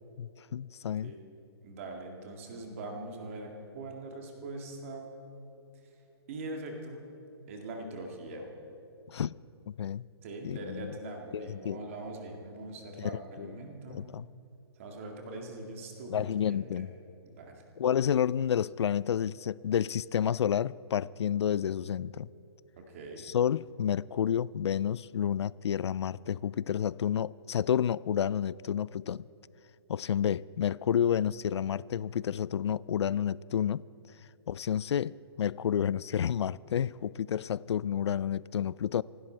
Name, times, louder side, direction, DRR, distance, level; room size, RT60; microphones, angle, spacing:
voice 1, 0.2-1.1 9.1-9.3 9.7-10.0 10.4-10.9 11.3-11.8 13.0-13.5 13.9-14.3 16.1-16.9 17.8-22.3 23.2-29.2 29.9-33.8 34.5-39.0, left 9 dB, 85° left, 0.4 m, -30 dB
voice 2, 1.6-5.2 6.3-7.0 7.5-8.5 10.2-14.0 14.8-16.9 17.2-17.6 22.8-23.2 30.1-30.2, right 2 dB, 30° right, 2.0 m, -42 dB
26.5 x 12.0 x 4.5 m
hypercardioid pair, 175°, 14 cm